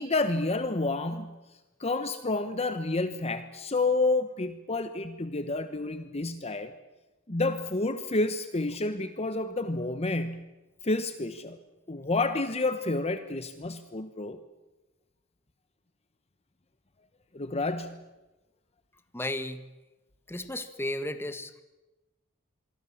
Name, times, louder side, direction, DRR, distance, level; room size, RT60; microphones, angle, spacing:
voice 1, 0.0-1.4 1.8-6.7 7.3-10.5 10.8-11.6 11.9-14.4 17.3-18.0, left 2 dB, 30° left, 10 dB, 1.1 m, -29 dB
voice 2, 19.1-19.7 20.3-21.5, left 1 dB, 10° left, 10 dB, 1.5 m, -34 dB
26.5 x 23.0 x 7.3 m, 1.1 s
head